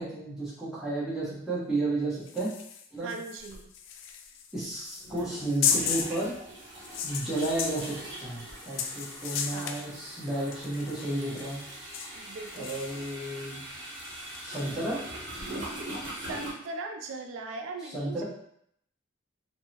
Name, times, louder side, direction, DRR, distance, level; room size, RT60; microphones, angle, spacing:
voice 1, 0.0-2.5 2.9-3.1 4.5-6.3 7.0-7.9 8.2-11.6 12.5-13.6 14.4-15.0 17.9-18.2, right 2 dB, ahead, -10 dB, 1.0 m, -32 dB
sound 1, 2.3-6.3 6.8-9.9 10.5-11.7 11.9-14.8, left 7 dB, 75° left, 0.3 m, -35 dB
voice 2, 3.0-3.7 9.5-9.8 12.2-12.8 16.3-18.2, right 3 dB, 75° right, 5 dB, 0.3 m, -39 dB
sound 2, 3.5-3.6 5.0-16.5, right 1 dB, 60° right, 0.9 m, -42 dB
3.5 x 2.0 x 2.8 m, 0.70 s
head